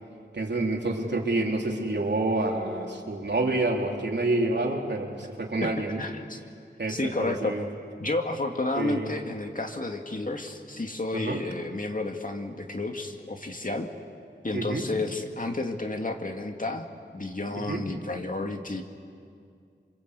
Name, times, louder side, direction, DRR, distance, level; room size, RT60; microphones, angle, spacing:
voice 1, 0.3-6.0 6.8-7.6 8.8-9.1 11.1-11.4 14.5-14.8 17.6-17.8, right 2 dB, 65° right, 0 dB, 3.6 m, -28 dB
voice 2, 6.0-6.4 6.9-7.5 8.0-13.9 14.4-16.9 17.1-18.8, left 2 dB, 45° left, 4 dB, 2.3 m, -31 dB
27.5 x 26.0 x 8.3 m, 2.3 s
wide cardioid pair, 70°, 19 cm